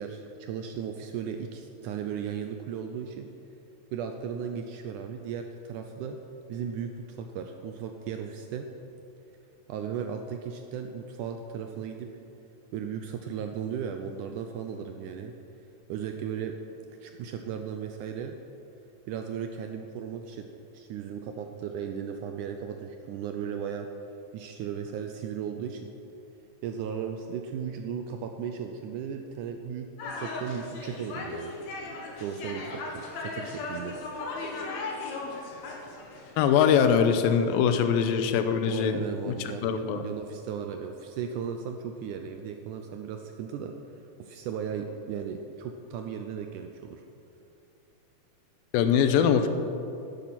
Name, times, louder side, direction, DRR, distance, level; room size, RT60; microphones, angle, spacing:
voice 1, 0.0-3.3 3.9-6.2 6.5-8.7 9.7-12.1 12.7-15.3 15.9-16.6 17.0-18.4 19.1-20.5 20.7-23.9 24.3-25.9 26.6-29.9 30.1-31.5 32.2-34.0 38.7-43.8 44.2-47.0, right 7 dB, 80° right, 5 dB, 1.9 m, -36 dB
sound 1, 30.0-37.0, left 3 dB, 60° left, 2.3 m, -37 dB
voice 2, 36.4-39.0 39.6-40.0 48.7-49.5, left 7 dB, 85° left, 9 dB, 2.5 m, -22 dB
11.0 x 10.5 x 6.0 m, 2.8 s
omnidirectional pair, 4.1 m